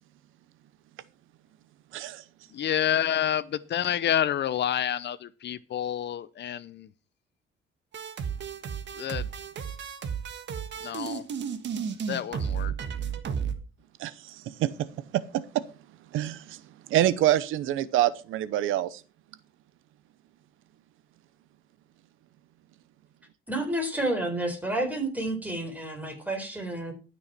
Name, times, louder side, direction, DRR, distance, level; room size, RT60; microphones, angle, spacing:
voice 1, 2.5-6.9 9.0-9.3 10.8-11.2 12.1-12.7, left 10 dB, 60° left, 0.7 m, -28 dB
sound 1, 7.9-13.5, right 7 dB, 65° right, 1.6 m, -33 dB
voice 2, 16.9-18.9, right 13 dB, 85° right, 0.8 m, -25 dB
voice 3, 23.5-26.9, right 1 dB, 10° right, 4.3 m, -30 dB
12.5 x 6.3 x 5.8 m
cardioid pair, 90°, 20 cm